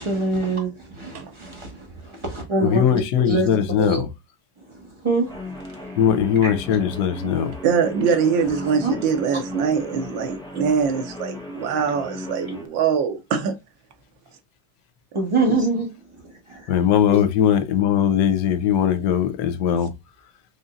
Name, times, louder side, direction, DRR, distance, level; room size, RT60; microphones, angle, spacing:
voice 1, 0.0-3.0 3.3-3.5 3.8-4.0 4.7-5.5 5.8-6.0 6.4-6.5 8.8-9.0 15.1-15.9 16.2-16.7 17.1-17.2, right 2 dB, 20° right, 1.2 m, -25 dB
voice 2, 2.6-4.1 6.0-7.5 16.7-19.9, left 9 dB, 70° left, 1.2 m, -20 dB
Guitar, 5.2-12.7, left 2 dB, 5° left, 0.7 m, -36 dB
voice 3, 7.6-13.6, right 6 dB, 90° right, 1.5 m, -23 dB
4.9 x 2.7 x 2.5 m
omnidirectional pair, 2.0 m